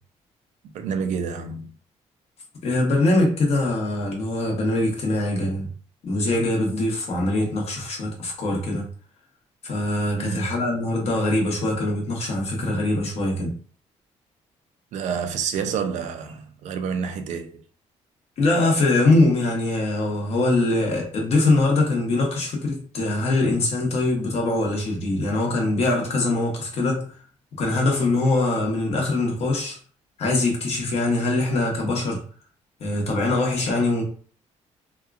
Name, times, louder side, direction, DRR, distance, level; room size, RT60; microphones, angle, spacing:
voice 1, 0.7-1.7 10.2-10.5 14.9-17.6, right 6 dB, 70° right, 0.4 m, -28 dB
voice 2, 2.6-5.7 6.0-8.9 9.6-13.5 18.4-27.1 27.6-29.8 30.2-32.2 32.8-34.0, left 2 dB, 55° left, 1.0 m, -22 dB
2.8 x 2.3 x 2.4 m
cardioid pair, 125°, 13 cm